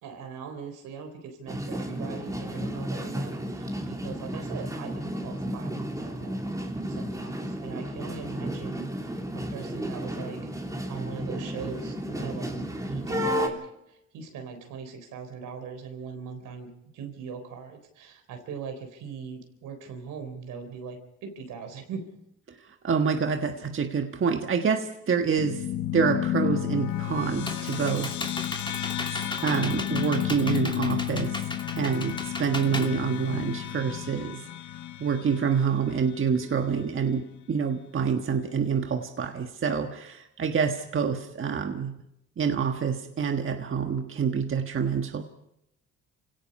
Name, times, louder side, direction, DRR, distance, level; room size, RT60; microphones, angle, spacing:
voice 1, 0.0-6.4 6.9-10.5 10.9-13.6 13.9-22.1, right 6 dB, 85° right, 6 dB, 3.9 m, -40 dB
sound 1, 1.5-13.5, equal, 10° right, 3.1 m, -33 dB
voice 2, 22.8-25.6 25.9-28.2 29.1-31.4 31.7-34.4 35.0-42.0 42.4-45.2, right 6 dB, 45° right, 5 dB, 1.5 m, -27 dB
sound 2, 25.4-36.2, left 12 dB, 75° left, 0.8 m, -32 dB
Computer keyboard, 26.9-33.8, left 2 dB, 15° left, 2.7 m, -37 dB
27.5 x 17.5 x 5.5 m, 0.79 s
cardioid pair, 90°, 30 cm